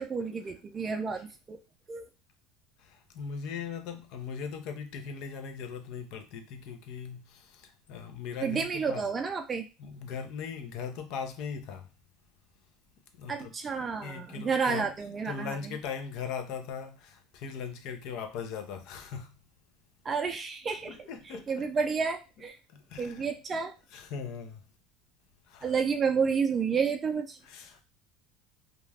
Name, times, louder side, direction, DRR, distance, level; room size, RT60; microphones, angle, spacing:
voice 1, 0.0-1.6 1.9-2.0 8.4-9.6 13.3-15.6 20.0-21.1 21.5-22.6 23.0-23.7 25.6-27.4, right 5 dB, 25° right, 0.4 m, -30 dB
voice 2, 2.8-9.0 9.8-11.9 13.1-13.5 14.0-14.9 15.3-19.3 20.9-21.7 22.7-23.3 23.9-24.6 25.5-25.7 27.4-27.8, left 6 dB, 60° left, 0.5 m, -39 dB
2.4 x 2.2 x 3.3 m
supercardioid pair, 125°, 0 cm